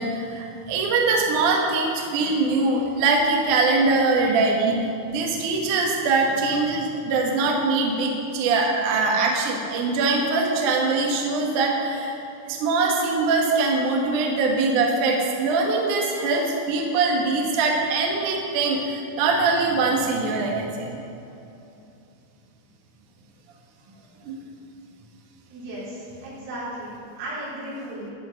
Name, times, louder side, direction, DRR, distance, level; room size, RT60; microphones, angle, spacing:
voice 1, 0.0-4.8 5.1-12.2 12.5-20.9 24.2-24.4, right 3 dB, 70° right, 0 dB, 1.9 m, -22 dB
voice 2, 25.5-28.1, right 1 dB, 85° right, -8 dB, 6.2 m, -35 dB
13.5 x 6.0 x 7.8 m, 2.7 s
omnidirectional pair, 5.6 m